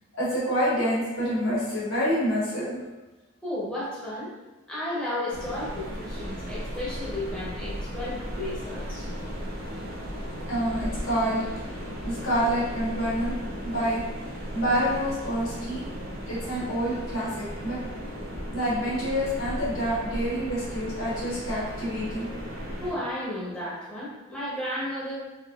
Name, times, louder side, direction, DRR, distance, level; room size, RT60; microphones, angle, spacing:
voice 1, 0.2-2.8 10.5-11.5 12.0-13.4 13.6-15.8 16.3-17.8 18.5-22.3, equal, 80° left, -8 dB, 1.3 m, -27 dB
voice 2, 3.4-4.3 4.7-9.1 22.8-25.1, left 1 dB, 5° left, -9 dB, 0.7 m, -33 dB
sound 1, 5.3-22.9, equal, 45° right, 0.8 m, -36 dB
3.5 x 2.7 x 2.4 m, 1.1 s
head